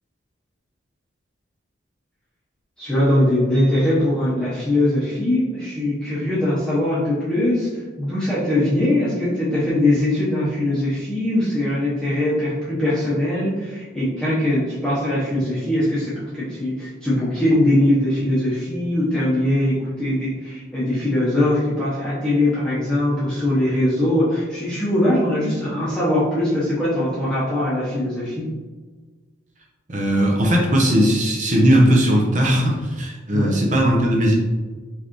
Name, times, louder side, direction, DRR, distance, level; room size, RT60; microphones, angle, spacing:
voice 1, 2.8-28.5 33.3-33.5, left 1 dB, 5° left, -11 dB, 0.9 m, -21 dB
voice 2, 29.9-34.3, equal, 40° right, -1 dB, 0.8 m, -18 dB
4.6 x 3.4 x 3.0 m, 1.3 s
head